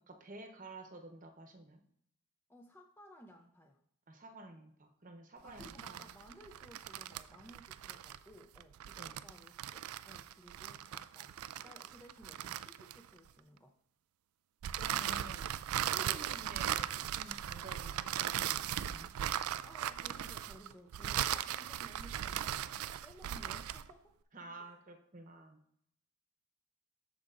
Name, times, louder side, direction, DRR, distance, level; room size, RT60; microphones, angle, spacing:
voice 1, 0.0-1.8 4.1-6.1 9.0-9.2 14.8-19.1 24.3-25.6, right 2 dB, 35° right, 5 dB, 0.9 m, -51 dB
voice 2, 2.5-3.8 5.4-13.7 19.6-24.2 24.6-24.7, equal, 10° left, 2 dB, 0.5 m, -57 dB
sound 1, 5.5-13.3 14.6-23.9, right 11 dB, 75° right, 0.3 m, -38 dB
13.5 x 5.0 x 2.5 m, 0.67 s
head